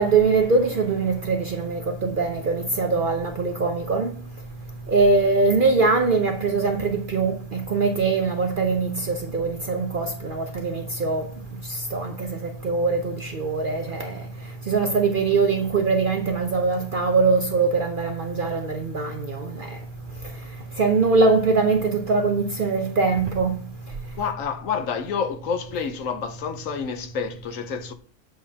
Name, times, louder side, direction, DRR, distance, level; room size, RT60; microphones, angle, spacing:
voice 1, 0.0-4.2 4.9-11.3 11.7-14.2 14.7-19.8 20.8-23.5, right 4 dB, 50° right, 0.7 m, -22 dB
voice 2, 24.2-27.9, left 6 dB, 65° left, 1.0 m, -29 dB
7.7 x 6.4 x 2.8 m
omnidirectional pair, 1.5 m